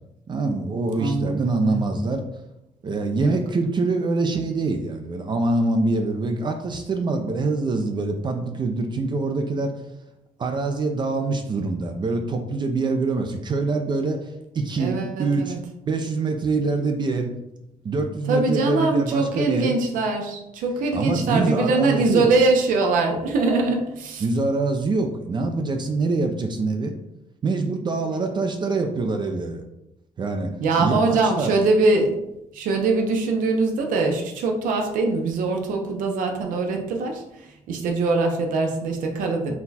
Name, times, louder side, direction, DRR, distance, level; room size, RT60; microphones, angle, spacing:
voice 1, 0.3-2.2 2.8-9.8 10.4-15.5 15.9-17.3 17.8-19.7 20.9-22.3 24.2-26.9 27.4-29.6 30.2-30.5 30.8-31.5, right 3 dB, 35° right, 4 dB, 0.4 m, -25 dB
voice 2, 1.0-1.8 3.2-3.4 14.8-15.6 18.3-24.2 30.6-32.2 32.5-37.2 37.7-39.5, right 3 dB, 90° right, 3 dB, 0.6 m, -22 dB
4.2 x 2.2 x 4.0 m, 0.86 s
cardioid pair, 125°, 13 cm